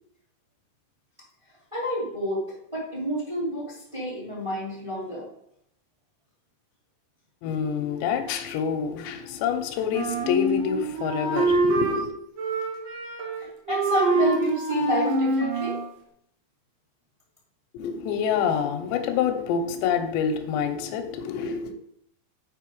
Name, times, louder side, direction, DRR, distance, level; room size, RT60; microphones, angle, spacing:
voice 1, 1.7-2.4 2.7-5.3 13.4-15.8, right 1 dB, 10° right, -5 dB, 1.5 m, -29 dB
voice 2, 7.4-12.1 17.7-21.7, left 7 dB, 80° left, 5 dB, 2.9 m, -27 dB
Wind instrument woodwind instrument, 9.9-12.0 12.4-13.4 13.7-15.9, right 2 dB, 70° right, 1.6 m, -25 dB
7.7 x 5.4 x 4.7 m, 0.73 s
omnidirectional pair, 5.3 m